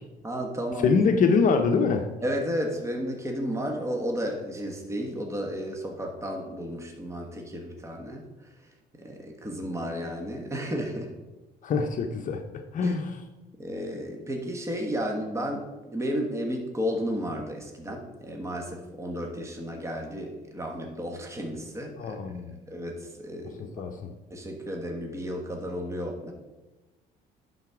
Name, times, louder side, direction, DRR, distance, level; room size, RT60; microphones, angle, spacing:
voice 1, 0.2-0.9 2.2-8.3 9.0-11.1 12.8-13.0 13.6-22.2 22.7-23.6 24.3-26.3, equal, 15° right, 2 dB, 1.3 m, -33 dB
voice 2, 0.8-2.1 11.6-12.4 12.7-13.1 22.0-22.6 23.6-24.1, left 5 dB, 50° left, 5 dB, 0.7 m, -24 dB
10.5 x 4.1 x 4.7 m, 1.1 s
cardioid pair, 110°, 17 cm